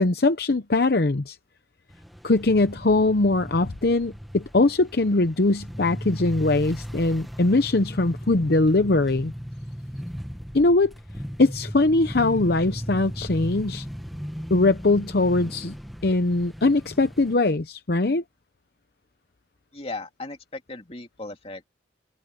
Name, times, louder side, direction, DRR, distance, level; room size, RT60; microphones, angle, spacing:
voice 1, 0.0-1.4 2.2-9.3 10.5-10.9 11.4-13.8 14.5-15.7 16.0-18.2, left 2 dB, 60° left, 0.8 m, -21 dB
sound 1, 1.9-17.3, equal, ahead, 1.5 m, -37 dB
voice 2, 19.7-21.7, left 2 dB, 35° left, 2.8 m, -37 dB
head